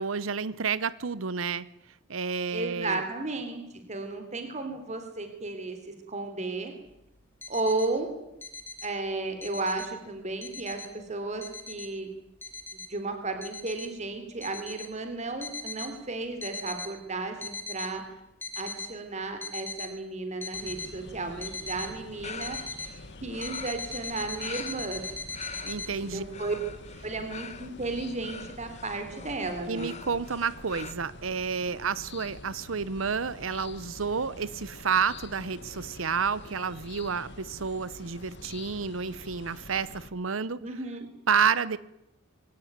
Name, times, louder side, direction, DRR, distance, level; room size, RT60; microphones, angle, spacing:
voice 1, 0.0-1.7 2.1-3.0 25.6-26.2 29.7-40.6 41.3-41.8, right 6 dB, 80° right, 0.8 m, -30 dB
voice 2, 2.5-3.6 3.9-6.7 7.5-8.1 8.8-12.1 12.9-18.0 18.6-22.6 23.2-25.0 26.0-26.6 27.0-30.0 40.6-41.1, right 3 dB, 35° right, 3.5 m, -34 dB
sound 1, 7.2-7.9 8.4-8.9 9.2-9.9 10.4-10.9 11.4-11.9 12.4-12.9 13.4-13.9 14.4-14.9 15.4-15.9 16.4-16.9 17.3-17.9 18.4-18.9 19.4-19.9 20.4-20.9 21.4-21.9 22.4-22.9 23.4-25.9, left 4 dB, 10° left, 3.2 m, -39 dB
sound 2, 20.5-40.1, left 2 dB, 60° left, 1.8 m, -46 dB
sound 3, 22.2-30.9, left 5 dB, 35° left, 1.7 m, -44 dB
22.5 x 17.5 x 9.5 m
head